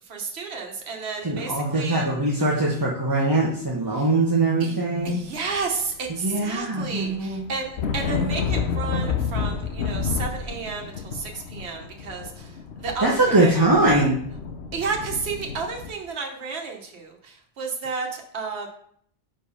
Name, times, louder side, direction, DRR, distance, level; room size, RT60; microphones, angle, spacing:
voice 1, 0.0-2.1 3.9-4.1 4.6-13.5 14.7-18.7, right 4 dB, 80° right, 2 dB, 1.3 m, -32 dB
voice 2, 1.2-5.2 6.2-7.4 8.2-8.3 13.0-14.2, right 2 dB, 20° right, -4 dB, 0.9 m, -22 dB
sound 1, 5.1-6.1 6.4-15.9, left 6 dB, 80° left, 1.0 m, -30 dB
5.1 x 4.6 x 5.5 m, 0.65 s
omnidirectional pair, 1.1 m